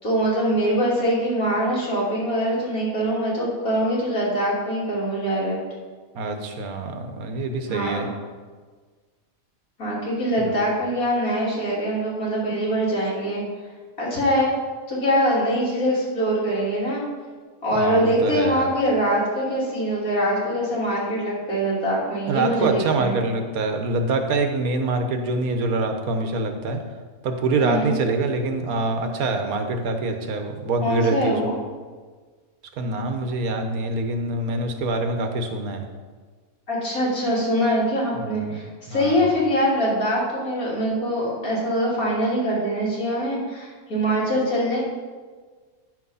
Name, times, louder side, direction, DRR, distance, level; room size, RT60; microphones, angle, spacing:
voice 1, 0.0-5.6 7.6-8.1 9.8-13.4 14.0-14.5 14.9-17.0 17.6-23.2 27.6-28.0 30.8-31.6 36.7-44.8, equal, 80° left, -6 dB, 3.3 m, -23 dB
voice 2, 6.1-8.1 17.7-18.7 22.3-26.8 27.2-31.5 32.8-35.9 38.2-38.5 38.9-39.2, right 3 dB, 90° right, 6 dB, 1.4 m, -25 dB
9.9 x 6.1 x 5.5 m, 1.5 s
omnidirectional pair, 1.5 m